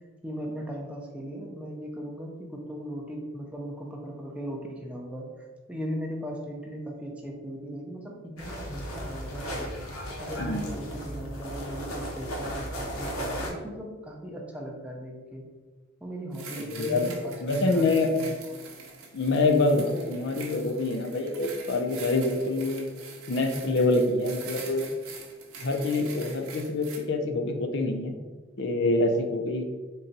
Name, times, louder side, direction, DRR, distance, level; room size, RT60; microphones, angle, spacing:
voice 1, 0.2-9.7 10.2-15.5 16.0-18.6, equal, 5° right, -1 dB, 0.5 m, -38 dB
sound 1, 8.4-13.5, equal, 75° left, 0.8 m, -35 dB
voice 2, 10.4-10.7 16.7-17.1 17.4-18.1 19.1-22.9 23.3-24.8 25.6-28.1 28.6-29.6, left 2 dB, 55° left, 4 dB, 0.5 m, -26 dB
sound 2, 16.3-27.0, right 5 dB, 75° right, 0.7 m, -44 dB
3.9 x 2.3 x 3.9 m, 1.3 s
head